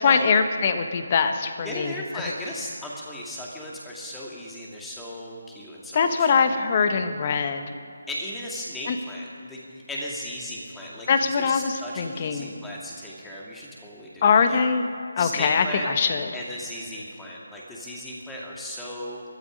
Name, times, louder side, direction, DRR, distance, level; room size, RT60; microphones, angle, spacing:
voice 1, 0.0-1.9 5.9-7.7 8.9-9.0 11.1-12.6 14.2-14.9 15.2-16.3, left 5 dB, 35° left, 8 dB, 1.2 m, -22 dB
voice 2, 1.6-6.3 8.1-14.6 15.2-15.9 16.3-19.2, left 1 dB, 5° left, -4 dB, 2.3 m, -36 dB
21.5 x 12.5 x 5.2 m, 2.3 s
figure-of-eight pair, 155°, 0 cm